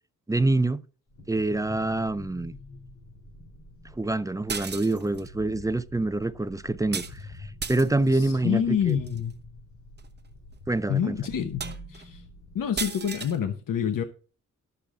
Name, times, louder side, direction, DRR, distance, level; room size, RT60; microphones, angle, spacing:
voice 1, 0.3-0.8 1.3-2.6 4.0-9.0 10.7-11.2, right 2 dB, 10° right, 0.4 m, -26 dB
sound 1, 1.1-13.5, left 2 dB, 60° left, 3.0 m, -46 dB
sound 2, 4.5-5.3 6.9-7.2 7.6-8.1 8.9-9.2 10.0-10.1 10.5-10.6 11.3-11.4 11.6-12.0 12.8-13.4, right 5 dB, 30° right, 0.8 m, -34 dB
voice 2, 8.1-9.4 10.9-12.2 12.5-14.0, left 8 dB, 85° left, 0.9 m, -27 dB
11.5 x 6.9 x 3.6 m
wide cardioid pair, 135°, 32 cm